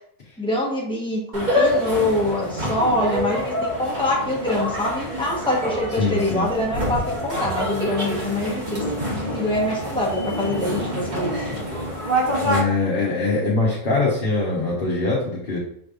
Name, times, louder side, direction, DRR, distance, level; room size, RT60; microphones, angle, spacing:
voice 1, 0.4-8.8 9.1-11.4, left 1 dB, 5° left, -4 dB, 1.0 m, -24 dB
sound 1, 1.3-12.6, equal, 35° right, 1.2 m, -26 dB
voice 2, 6.0-6.5 12.4-15.6, left 3 dB, 40° left, -6 dB, 1.1 m, -22 dB
6.1 x 3.2 x 2.5 m, 0.70 s
omnidirectional pair, 1.5 m